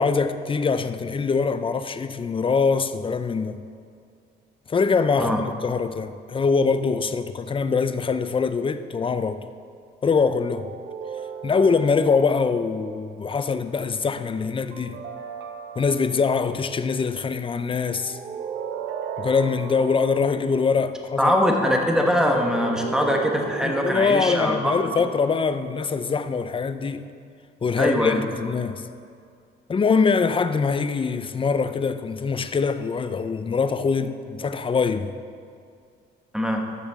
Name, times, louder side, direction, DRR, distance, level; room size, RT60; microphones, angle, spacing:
voice 1, 0.0-3.6 4.7-9.4 10.0-10.7 11.4-15.0 15.8-18.2 19.2-21.3 23.6-27.1 27.6-28.8 29.7-35.1, left 5 dB, 25° left, 0.5 m, -23 dB
sound 1, 10.6-13.0 14.7-16.6 17.9-20.7 22.0-26.5, right 7 dB, 65° right, 0.9 m, -36 dB
voice 2, 21.2-24.9 27.8-28.2 36.3-36.7, equal, 5° right, 1.3 m, -22 dB
13.5 x 7.1 x 3.6 m
cardioid pair, 90°, 20 cm